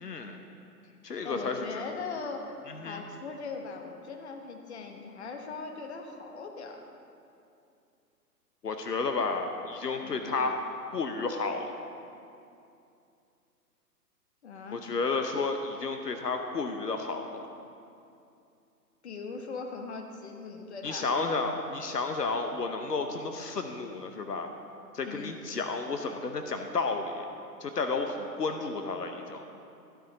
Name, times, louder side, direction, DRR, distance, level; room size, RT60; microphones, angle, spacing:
voice 1, 0.0-0.4 1.0-1.8 2.7-3.0 8.6-10.6 10.9-11.8 14.7-17.5 20.8-24.5 24.9-27.3 27.6-29.4, left 4 dB, 75° left, 5 dB, 0.9 m, -32 dB
voice 2, 1.2-2.6 2.8-6.8 10.0-10.4 14.4-14.8 19.0-21.3 25.0-25.3, left 4 dB, 40° left, 4 dB, 1.1 m, -40 dB
13.0 x 8.5 x 4.0 m, 2.6 s
figure-of-eight pair, 130°, 49 cm